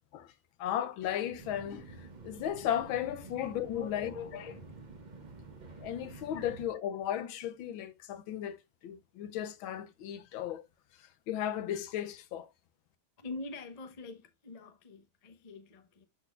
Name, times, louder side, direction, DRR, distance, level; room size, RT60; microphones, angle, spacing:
voice 1, 0.6-4.1 5.8-10.6 11.3-12.5, left 10 dB, 75° left, 1.5 m, -35 dB
sound 1, 1.4-6.7, right 3 dB, 35° right, 0.7 m, -49 dB
voice 2, 3.3-4.8 6.3-6.5 13.2-16.1, left 4 dB, 35° left, 0.6 m, -45 dB
12.5 x 4.1 x 2.4 m
omnidirectional pair, 2.2 m